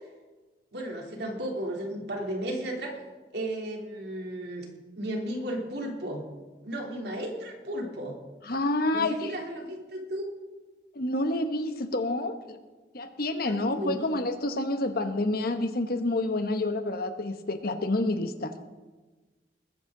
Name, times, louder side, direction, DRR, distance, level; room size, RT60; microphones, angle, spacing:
voice 1, 0.7-2.9 3.3-4.6 5.0-6.2 6.6-8.2 8.9-10.3 13.4-14.0, right 1 dB, 65° right, 0 dB, 3.2 m, -34 dB
voice 2, 8.5-9.3 10.9-12.6 12.9-18.5, left 2 dB, 55° left, 8 dB, 1.1 m, -28 dB
21.0 x 10.0 x 3.9 m, 1.2 s
head